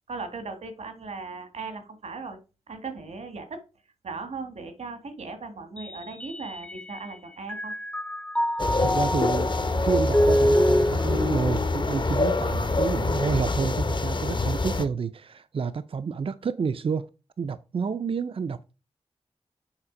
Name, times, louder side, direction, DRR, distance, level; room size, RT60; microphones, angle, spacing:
voice 1, 0.1-2.4 2.7-3.6 4.0-7.7, right 4 dB, 85° right, 1.6 m, -38 dB
Mallet percussion, 5.8-7.1 7.5-12.9, left 1 dB, 10° left, 0.6 m, -26 dB
sound 1, 8.6-14.9, left 2 dB, 45° left, 0.8 m, -26 dB
voice 2, 8.8-9.5 9.8-17.1 17.4-18.6, right 5 dB, 55° right, 0.4 m, -29 dB
7.2 x 4.2 x 5.0 m
wide cardioid pair, 65°, 11 cm